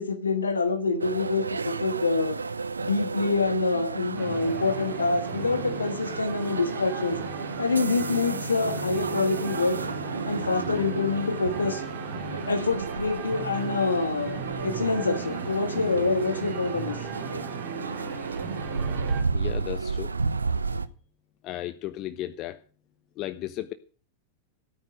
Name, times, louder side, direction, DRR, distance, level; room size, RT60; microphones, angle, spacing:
voice 1, 0.0-2.4 2.8-7.2 7.6-9.8 10.3-11.8 12.5-17.0, left 3 dB, 75° left, 1.5 m, -26 dB
sound 1, 1.0-20.9, right 4 dB, 75° right, 0.7 m, -33 dB
sound 2, 4.1-19.2, right 5 dB, 45° right, 3.2 m, -37 dB
voice 2, 19.3-20.1 21.4-22.6 23.2-23.7, left 14 dB, 40° left, 0.8 m, -34 dB
14.0 x 8.9 x 6.3 m
figure-of-eight pair, 90°, 0 cm